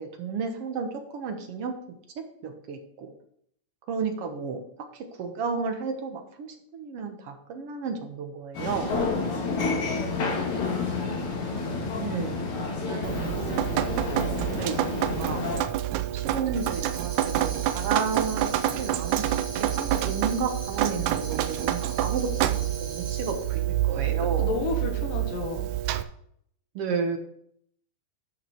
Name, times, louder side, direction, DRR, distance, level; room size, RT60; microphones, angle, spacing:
voice 1, 0.0-1.7 2.2-3.1 3.9-4.6 4.9-9.0 12.0-12.5 12.8-13.7 14.5-15.4 16.1-19.2 19.6-24.5 26.7-27.2, right 5 dB, 65° right, 4 dB, 1.5 m, -32 dB
sound 1, 8.5-15.6, left 3 dB, 55° left, 3.4 m, -30 dB
voice 2, 9.9-11.1 24.4-25.7, left 5 dB, 75° left, 3 dB, 3.2 m, -32 dB
Drip, 13.0-26.0, right 12 dB, 85° right, 1.7 m, -28 dB
Tambourine, 16.5-23.6, right 3 dB, 30° right, 1.8 m, -42 dB
12.0 x 5.9 x 4.4 m, 0.68 s
omnidirectional pair, 4.0 m